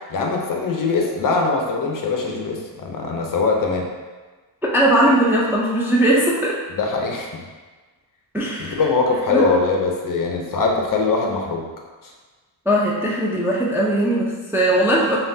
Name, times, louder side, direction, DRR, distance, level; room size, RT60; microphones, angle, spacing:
voice 1, 0.1-3.9 6.7-7.4 8.6-11.7 12.0-12.1, left 4 dB, 45° left, 1 dB, 0.6 m, -22 dB
voice 2, 4.7-6.5 8.3-8.8 9.3-9.5 12.7-15.2, right 1 dB, 5° right, -5 dB, 0.4 m, -19 dB
5.6 x 2.4 x 2.7 m, 1.3 s
cardioid pair, 110°, 48 cm